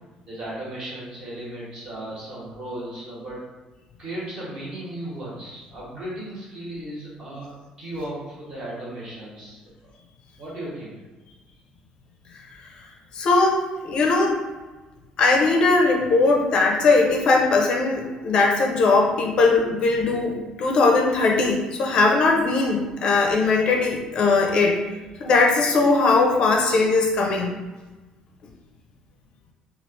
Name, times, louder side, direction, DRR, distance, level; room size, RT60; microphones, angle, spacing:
voice 1, 0.3-3.4 4.0-9.6 10.4-10.9, right 1 dB, 35° right, -7 dB, 1.1 m, -35 dB
voice 2, 13.1-14.4 15.2-24.8 25.2-27.5, left 3 dB, 40° left, 0 dB, 0.4 m, -19 dB
3.1 x 2.3 x 3.2 m, 1.2 s
cardioid pair, 180°, 2 cm